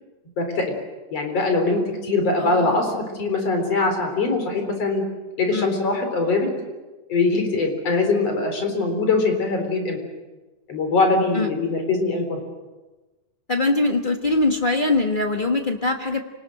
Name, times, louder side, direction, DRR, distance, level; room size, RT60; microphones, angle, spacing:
voice 1, 0.4-0.7 1.1-5.0 5.4-6.5 7.1-10.0 10.7-12.4, left 3 dB, 55° left, 4 dB, 5.1 m, -22 dB
voice 2, 2.4-3.0 5.5-5.7 11.3-11.5 13.5-16.2, left 2 dB, 35° left, 3 dB, 0.7 m, -22 dB
28.5 x 19.5 x 7.8 m, 1.2 s
omnidirectional pair, 3.4 m